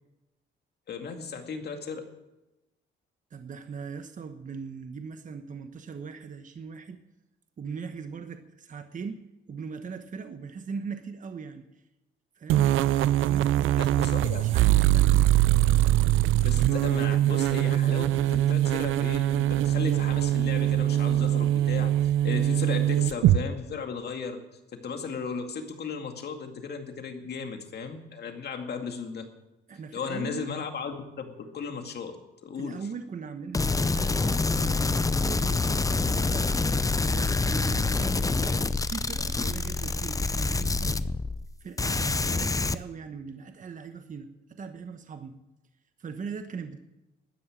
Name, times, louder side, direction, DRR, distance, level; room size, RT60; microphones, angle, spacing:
voice 1, 0.9-2.1 13.8-14.5 16.4-24.4 24.7-29.3 29.9-32.8, left 5 dB, 55° left, 5 dB, 2.2 m, -36 dB
voice 2, 3.3-7.0 7.6-9.2 9.5-11.7 12.4-12.7 13.3-15.2 29.7-30.4 32.6-41.0 41.6-45.4 46.0-46.8, right 5 dB, 40° right, 8 dB, 1.1 m, -40 dB
sound 1, 12.5-23.4, right 13 dB, 85° right, 0.6 m, -23 dB
sound 2, 33.5-41.5 41.8-42.7, left 3 dB, 15° left, 0.6 m, -26 dB
12.5 x 9.8 x 8.9 m, 0.97 s
cardioid pair, 90°, 20 cm